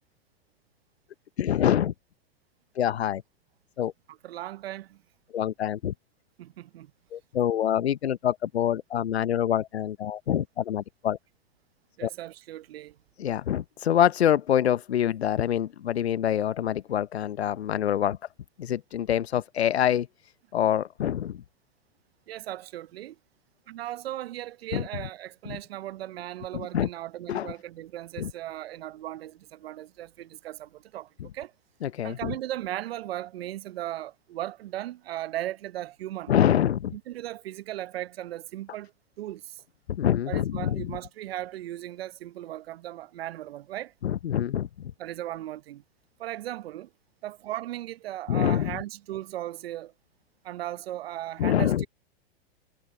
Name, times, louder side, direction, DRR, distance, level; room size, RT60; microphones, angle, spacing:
voice 1, 1.4-1.9 2.8-3.2 3.8-3.9 5.3-5.9 7.1-11.2 12.0-12.1 13.2-18.2 18.6-20.1 20.5-21.4 24.7-24.9 25.5-25.6 26.5-26.9 27.3-27.5 28.2-28.3 31.8-32.4 36.3-36.9 40.0-41.0 44.0-44.7 48.3-48.8 51.4-51.9, left 10 dB, 85° left, 0.8 m, -25 dB
voice 2, 4.2-5.0 6.4-6.9 12.0-12.9 22.3-23.2 23.7-31.5 32.0-36.3 36.9-38.9 39.2-39.6 40.3-43.9 45.0-45.8 46.2-46.9 47.2-49.9 50.4-51.7, right 14 dB, 70° right, 0.9 m, -37 dB
hypercardioid pair, 110°, 31 cm